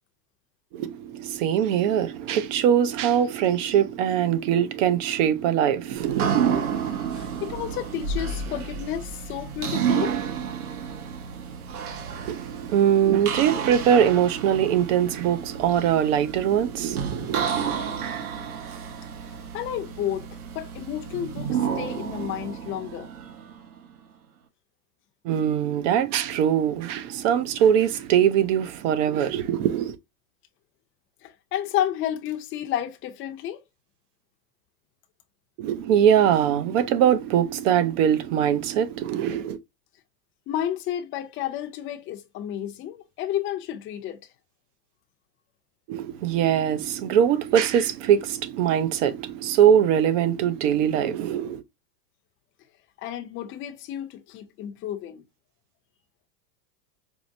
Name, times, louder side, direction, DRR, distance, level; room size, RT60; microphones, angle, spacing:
voice 1, 0.7-6.5 12.2-17.6 25.2-30.0 35.6-39.6 45.9-51.6, right 9 dB, 55° right, 0.7 m, -22 dB
sound 1, 5.9-23.8, right 7 dB, 70° right, 1.2 m, -30 dB
voice 2, 7.1-10.2 19.5-20.3 20.5-23.1 31.2-33.6 40.5-44.2 53.0-55.2, left 11 dB, 25° left, 0.6 m, -31 dB
4.7 x 2.1 x 2.6 m
supercardioid pair, 135°, 46 cm